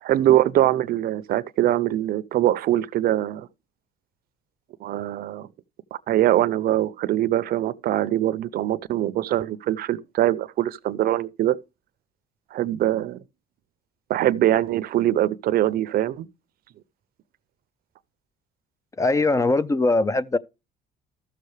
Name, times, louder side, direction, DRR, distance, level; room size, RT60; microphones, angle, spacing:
voice 1, 0.0-3.5 4.8-5.5 5.9-11.6 12.5-13.2 14.1-16.3, right 13 dB, 65° right, 0.5 m, -22 dB
voice 2, 19.0-20.4, left 2 dB, 20° left, 0.4 m, -21 dB
13.5 x 6.6 x 3.2 m
cardioid pair, 110°, 17 cm